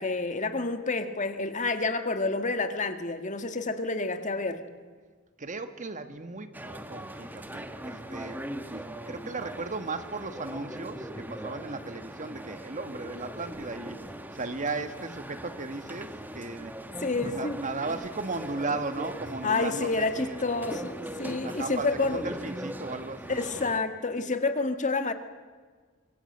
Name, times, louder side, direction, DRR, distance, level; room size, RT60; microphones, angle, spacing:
voice 1, 0.0-4.6 17.0-17.6 19.4-22.3 23.3-25.1, left 3 dB, 35° left, 8 dB, 1.8 m, -29 dB
voice 2, 5.4-14.0 14.3-16.7 17.2-20.4 21.2-23.4, right 3 dB, 35° right, 9 dB, 1.5 m, -36 dB
sound 1, 6.5-23.8, right 1 dB, 10° right, 1.4 m, -40 dB
26.0 x 23.0 x 8.0 m, 1.5 s
head